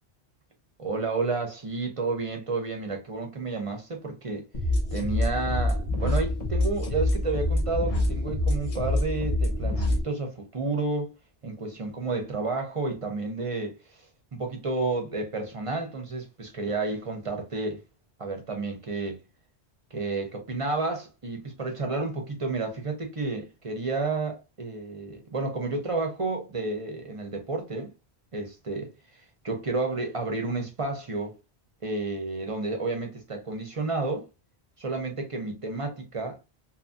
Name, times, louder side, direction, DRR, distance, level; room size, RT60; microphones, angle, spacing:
voice 1, 0.8-4.5 4.9-11.1 11.4-14.0 14.3-17.8 18.2-19.2 19.9-27.9 28.3-28.9 29.4-31.4 31.8-34.3 34.8-36.4, right 3 dB, 40° right, 0.5 m, -31 dB
sound 1, 4.5-10.0, left 1 dB, 40° left, 0.6 m, -26 dB
2.7 x 2.6 x 2.3 m
omnidirectional pair, 1.1 m